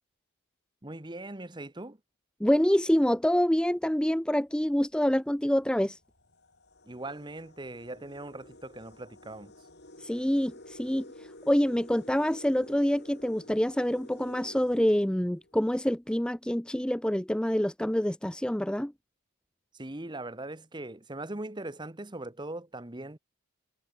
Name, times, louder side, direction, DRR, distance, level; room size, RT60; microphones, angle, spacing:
voice 1, 0.8-2.0 6.9-9.5 19.7-23.2, right 2 dB, 20° right, 1.1 m, -40 dB
voice 2, 2.4-6.0 10.0-11.1 11.5-18.9, equal, 5° left, 0.5 m, -26 dB
sound 1, 4.4-4.6 5.5-5.6 6.0-15.8, left 1 dB, 50° left, 5.1 m, -51 dB
head